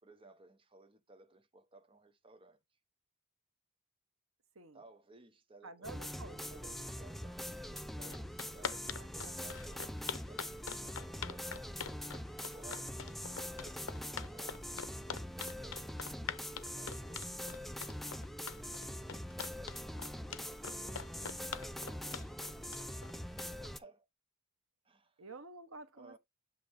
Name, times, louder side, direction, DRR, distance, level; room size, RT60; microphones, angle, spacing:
voice 1, 0.0-2.8 4.7-5.9 6.7-11.6 12.1-12.9 13.5-14.7 15.5-17.3 20.0-22.9 23.2-24.1 24.8-25.2 26.0-26.2, right 2 dB, 25° right, 0.8 m, -60 dB
voice 2, 5.6-6.8 8.4-8.6 9.0-9.4 25.2-26.2, right 3 dB, 85° right, 1.2 m, -51 dB
sound 1, 5.8-23.8, equal, ahead, 0.4 m, -43 dB
sound 2, 7.8-7.9 8.1-23.7, left 7 dB, 70° left, 0.7 m, -43 dB
8.1 x 3.1 x 4.2 m
head